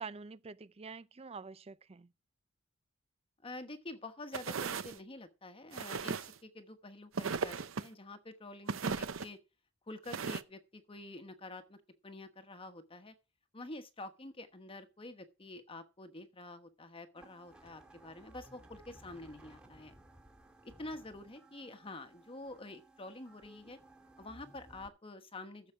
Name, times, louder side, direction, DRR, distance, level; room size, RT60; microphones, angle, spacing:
voice 1, 0.0-2.1, right 5 dB, 30° right, 0.5 m, -46 dB
voice 2, 3.4-9.4 9.9-11.8 12.0-13.1 13.5-19.9 20.6-23.8 24.2-25.7, left 2 dB, 25° left, 1.2 m, -48 dB
sound 1, 4.3-5.0 5.7-6.4 7.1-7.9 8.7-9.3 10.1-10.4, right 5 dB, 75° right, 0.7 m, -36 dB
sound 2, 17.2-24.9, right 1 dB, 5° right, 2.3 m, -59 dB
14.5 x 7.2 x 4.8 m
head